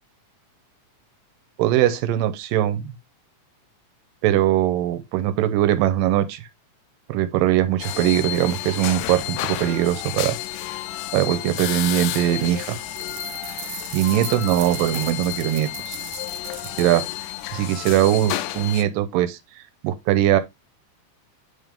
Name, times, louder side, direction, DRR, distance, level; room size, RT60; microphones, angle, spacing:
voice 1, 1.6-3.0 4.2-6.4 7.1-10.4 11.1-12.8 13.9-16.0 16.8-17.0 17.5-19.4 19.8-20.4, right 12 dB, 90° right, 2.4 m, -21 dB
sound 1, 7.8-18.8, left 15 dB, 80° left, 2.1 m, -31 dB
sound 2, 12.1-17.0, right 9 dB, 70° right, 1.6 m, -39 dB
8.8 x 3.5 x 3.5 m
omnidirectional pair, 3.9 m